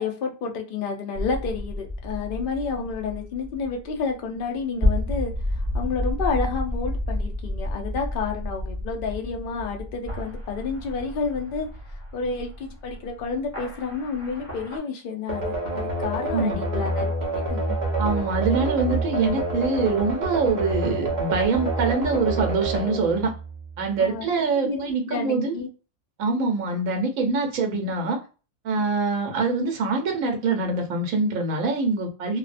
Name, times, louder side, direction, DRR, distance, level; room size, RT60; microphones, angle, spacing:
voice 1, 0.0-11.7 12.1-17.8 24.0-25.7, left 5 dB, 65° left, 2 dB, 0.5 m, -30 dB
sound 1, 1.2-14.8, left 1 dB, 15° left, 0.6 m, -31 dB
sound 2, 15.3-24.0, right 2 dB, 45° right, 0.6 m, -27 dB
voice 2, 18.0-23.3 23.8-25.6 26.2-28.2 28.6-32.4, right 3 dB, 75° right, 2 dB, 1.1 m, -24 dB
2.6 x 2.1 x 2.5 m, 0.33 s
omnidirectional pair, 1.5 m